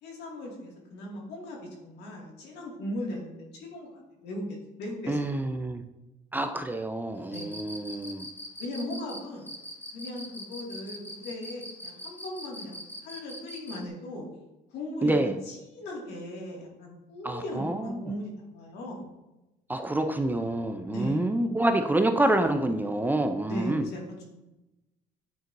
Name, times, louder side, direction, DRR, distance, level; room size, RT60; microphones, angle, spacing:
voice 1, 0.0-5.2 7.2-7.5 8.6-9.5 9.9-14.3 14.7-19.0 20.9-21.2 23.4-24.2, left 1 dB, 85° left, -2 dB, 2.1 m, -38 dB
voice 2, 5.1-5.8 6.3-8.3 15.0-15.3 17.2-18.1 19.7-23.8, right 1 dB, 10° right, 6 dB, 0.4 m, -27 dB
Cricket, 7.3-13.9, equal, 10° left, 0.8 m, -41 dB
9.2 x 4.4 x 2.6 m, 0.98 s
cardioid pair, 110°, 17 cm